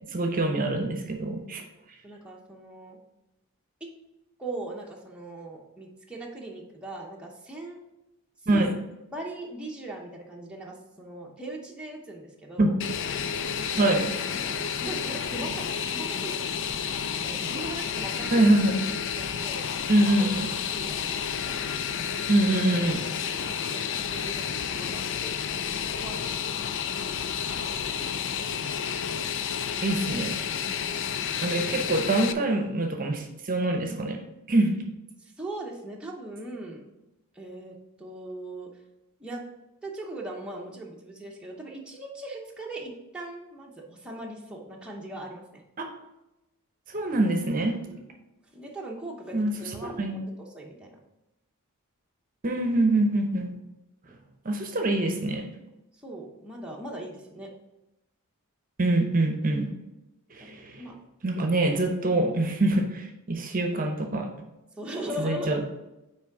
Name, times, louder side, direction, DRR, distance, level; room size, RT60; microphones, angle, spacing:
voice 1, 0.1-1.6 8.5-8.7 12.6-12.7 13.8-14.0 18.3-18.7 19.9-20.5 22.3-23.0 29.8-30.4 31.4-34.2 34.5-34.7 45.8-45.9 46.9-47.7 49.3-49.5 49.8-50.2 52.4-53.5 54.4-55.4 58.8-59.7 60.3-60.8 61.2-64.3 65.2-65.6, right 2 dB, 40° right, 4 dB, 0.8 m, -24 dB
voice 2, 2.0-3.0 3.8-3.9 4.4-7.8 8.5-8.7 9.1-12.8 13.6-13.9 14.3-16.9 17.2-18.5 19.2-19.6 20.0-20.2 20.5-21.2 23.4-25.3 25.7-26.5 27.5-28.2 30.6-31.0 35.2-36.9 37.3-38.7 39.2-39.4 39.8-45.6 47.9-48.2 48.5-50.2 50.5-51.0 55.9-57.5 60.4-60.9 64.8-65.6, right 1 dB, 5° right, -2 dB, 0.8 m, -40 dB
Fixed-wing aircraft airplane, 12.8-32.3, left 7 dB, 55° left, 0.4 m, -31 dB
6.1 x 4.6 x 4.7 m, 0.97 s
head